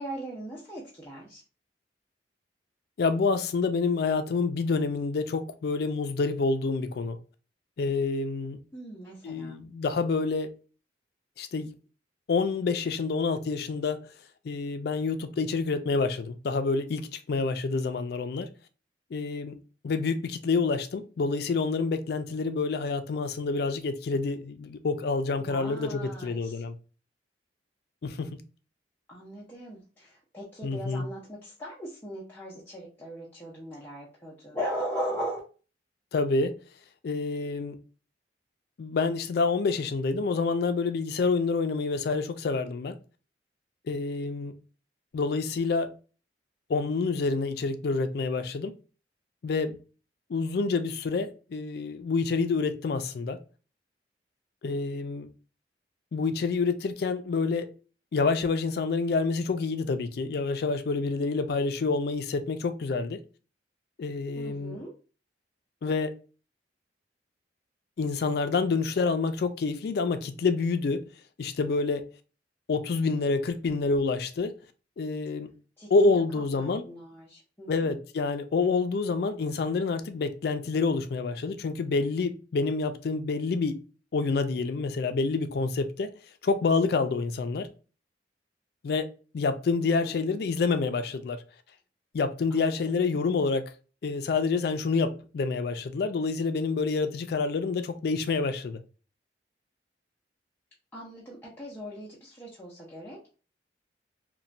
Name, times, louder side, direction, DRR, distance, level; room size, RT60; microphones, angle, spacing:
voice 1, 0.0-1.4 8.7-9.6 25.4-26.6 29.1-35.4 64.4-64.9 75.8-78.0 89.8-90.4 92.5-92.8 100.9-103.2, equal, 10° left, 0.5 m, -39 dB
voice 2, 3.0-7.2 7.8-8.6 9.2-10.5 11.4-11.7 12.3-14.0 14.4-18.5 19.1-19.6 19.8-26.8 28.0-28.4 30.6-31.0 36.1-36.6 37.0-37.8 38.8-43.0 43.9-44.5 45.1-45.9 46.7-48.7 49.4-49.8 50.3-53.4 54.6-55.3 56.1-57.7 58.1-63.2 64.0-64.8 65.8-66.1 68.0-71.0 71.4-72.0 72.7-74.5 75.0-75.5 75.9-76.8 77.7-83.8 84.1-86.1 86.4-87.7 88.8-91.4 92.1-93.6 94.0-98.8, left 4 dB, 60° left, 0.3 m, -28 dB
3.0 x 2.1 x 2.5 m
head